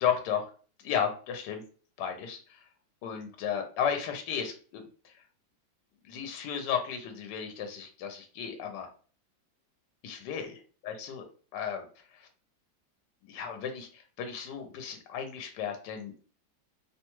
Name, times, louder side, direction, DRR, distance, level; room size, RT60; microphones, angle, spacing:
voice 1, 0.0-0.4 0.8-1.6 2.0-2.7 3.0-5.2 6.0-8.9 10.0-11.2 11.5-12.3 13.2-16.1, left 8 dB, 75° left, 5 dB, 1.1 m, -34 dB
2.9 x 2.2 x 2.9 m, 0.40 s
omnidirectional pair, 2.0 m